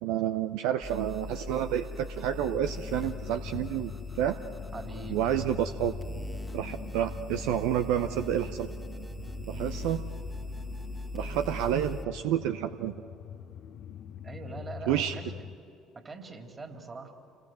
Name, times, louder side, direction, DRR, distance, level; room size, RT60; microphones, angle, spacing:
voice 1, 0.0-4.4 5.1-5.9 6.5-8.7 9.5-10.0 11.1-13.0 14.9-15.2, right 10 dB, 70° right, 9 dB, 0.7 m, -29 dB
sound 1, 0.8-12.0, left 1 dB, 10° right, 1.8 m, -40 dB
sound 2, 2.4-15.6, left 9 dB, 60° left, 0.9 m, -44 dB
voice 2, 4.7-5.3 14.2-15.5 15.9-17.1, right 3 dB, 30° right, 6 dB, 3.2 m, -42 dB
28.5 x 20.5 x 7.7 m, 2.6 s
hypercardioid pair, 55°, 0 cm